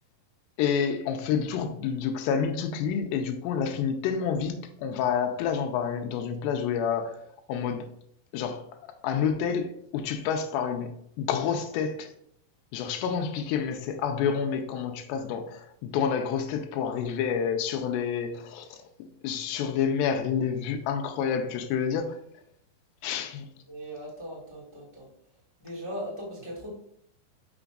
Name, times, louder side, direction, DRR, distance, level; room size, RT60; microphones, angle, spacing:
voice 1, 0.6-7.9 8.3-8.7 9.0-12.1 12.7-18.8 19.2-22.2 23.0-23.5, left 7 dB, 90° left, 2.8 m, -29 dB
voice 2, 23.7-25.1 25.6-26.7, equal, 15° left, 0.9 m, -38 dB
6.9 x 6.0 x 2.5 m
omnidirectional pair, 4.8 m